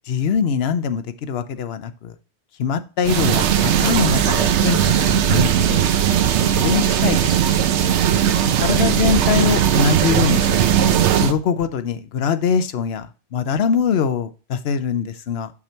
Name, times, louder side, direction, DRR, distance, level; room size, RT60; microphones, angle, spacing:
voice 1, 0.1-2.1 2.6-5.8 6.5-7.3 8.6-10.8 11.2-15.5, left 7 dB, 70° left, 11 dB, 0.9 m, -23 dB
sound 1, 3.0-11.3, right 9 dB, 90° right, 1.0 m, -18 dB
6.1 x 5.8 x 4.4 m, 0.34 s
omnidirectional pair, 1.1 m